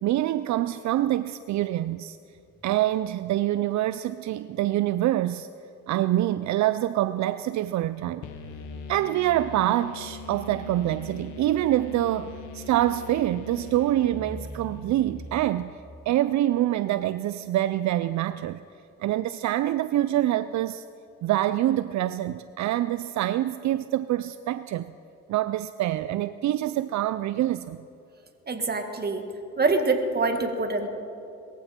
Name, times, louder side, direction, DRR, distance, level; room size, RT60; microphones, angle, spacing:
voice 1, 0.0-2.2 2.6-5.5 5.9-8.2 8.9-15.8 16.1-18.6 19.0-20.8 21.2-24.9 25.3-27.8, right 13 dB, 70° right, 14 dB, 0.5 m, -25 dB
sound 1, 8.2-15.9, left 3 dB, 85° left, 1.4 m, -41 dB
voice 2, 28.5-29.3 29.6-30.9, right 3 dB, 30° right, 6 dB, 1.9 m, -25 dB
22.0 x 15.0 x 4.4 m, 2.7 s
cardioid pair, 90°, 30 cm